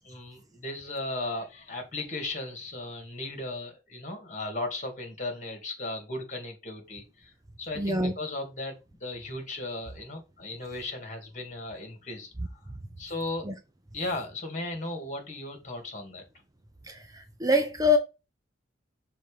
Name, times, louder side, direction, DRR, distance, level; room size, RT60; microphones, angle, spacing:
voice 1, 0.1-7.3 7.6-12.6 13.0-13.5 13.9-16.3, left 2 dB, 40° left, 2.3 m, -36 dB
voice 2, 7.8-8.1 13.5-13.6 16.9-18.0, left 2 dB, 20° right, 0.7 m, -25 dB
6.3 x 4.0 x 5.0 m
head